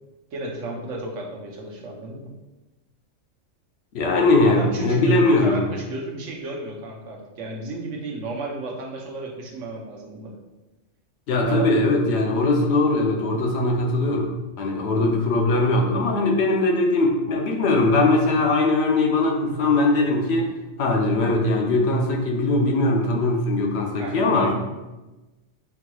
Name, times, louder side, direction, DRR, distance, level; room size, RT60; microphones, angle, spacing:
voice 1, 0.3-2.3 4.4-10.3 11.4-11.7 24.0-24.5, right 2 dB, 80° right, -1 dB, 1.1 m, -33 dB
voice 2, 3.9-5.6 11.3-14.3 14.6-20.5 20.8-24.5, left 2 dB, 65° left, 1 dB, 0.9 m, -20 dB
5.8 x 3.0 x 2.3 m, 1.1 s
omnidirectional pair, 1.3 m